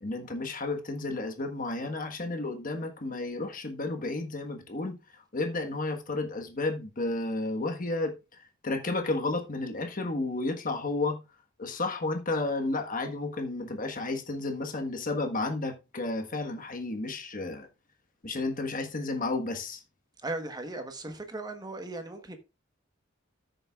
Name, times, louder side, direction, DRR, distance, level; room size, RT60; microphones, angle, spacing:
voice 1, 0.0-5.0 5.3-11.2 11.6-17.7 18.2-19.8, left 2 dB, 45° left, 1.4 m, -32 dB
voice 2, 20.2-22.4, right 2 dB, 20° right, 1.2 m, -37 dB
13.5 x 6.7 x 2.4 m
head